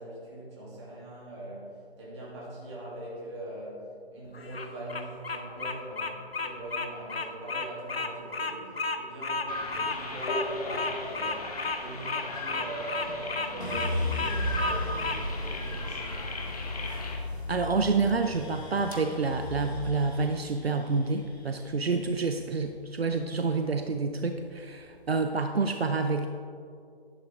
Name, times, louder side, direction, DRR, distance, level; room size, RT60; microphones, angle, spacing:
voice 1, 0.0-16.3, right 1 dB, 25° right, -5 dB, 3.0 m, -41 dB
Bird vocalization bird call bird song, 4.3-15.2, left 3 dB, 70° left, 1.0 m, -33 dB
sound 1, 9.5-17.2, left 2 dB, 35° left, 1.5 m, -37 dB
sound 2, 13.6-23.8 24.3-25.0, left 1 dB, 90° left, 2.2 m, -36 dB
voice 2, 17.5-26.3, right 4 dB, 70° right, 6 dB, 0.7 m, -28 dB
11.0 x 11.0 x 3.6 m, 2.4 s
figure-of-eight pair, 140°, 32 cm